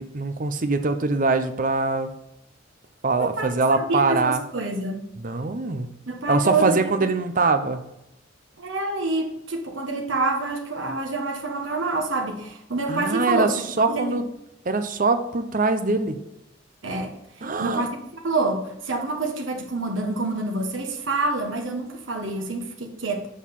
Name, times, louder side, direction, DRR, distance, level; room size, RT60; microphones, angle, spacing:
voice 1, 0.0-2.1 3.0-4.4 5.2-5.9 6.3-7.8 12.9-14.2 14.6-16.1 17.4-17.9, right 3 dB, 45° right, 9 dB, 0.8 m, -23 dB
voice 2, 3.2-5.0 6.1-6.9 8.6-13.5 13.9-14.2 15.8-16.0 16.8-17.1 17.6-23.3, right 3 dB, 85° right, 2 dB, 1.4 m, -27 dB
7.5 x 6.5 x 5.4 m, 0.85 s
head